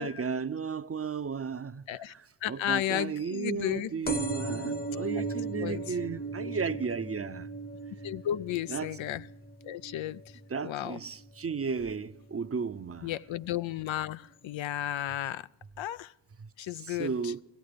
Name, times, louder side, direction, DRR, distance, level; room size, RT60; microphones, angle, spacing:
voice 1, 0.0-7.5 8.7-8.9 10.5-13.1 16.4-16.5 16.8-17.4, right 5 dB, 30° right, 0.6 m, -34 dB
voice 2, 2.4-3.9 5.6-5.9 8.0-9.3 9.6-10.2 10.6-11.0 13.0-15.5 15.8-16.1 16.6-17.3, left 12 dB, 85° left, 0.5 m, -33 dB
sound 1, 4.1-11.3 11.8-12.2 13.1-13.2 13.4-13.5 13.7-13.8, right 3 dB, 20° left, 0.9 m, -37 dB
17.0 x 16.0 x 5.1 m
cardioid pair, 70°, 45 cm